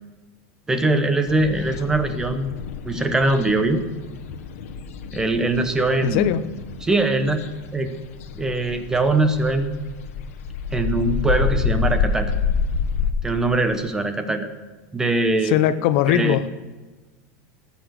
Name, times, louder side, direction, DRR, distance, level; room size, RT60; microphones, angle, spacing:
voice 1, 0.7-2.6 2.8-3.8 5.1-6.3 6.8-7.4 7.7-7.9 8.3-9.7 10.7-12.3 13.2-14.5 14.9-15.6 16.1-16.4, right 2 dB, 10° right, 0.8 m, -22 dB
sound 1, 1.3-13.1, left 5 dB, 80° left, 1.2 m, -28 dB
voice 2, 6.0-6.4 15.4-16.5, left 12 dB, 50° left, 0.7 m, -20 dB
18.5 x 7.0 x 6.3 m
supercardioid pair, 170°, 8 cm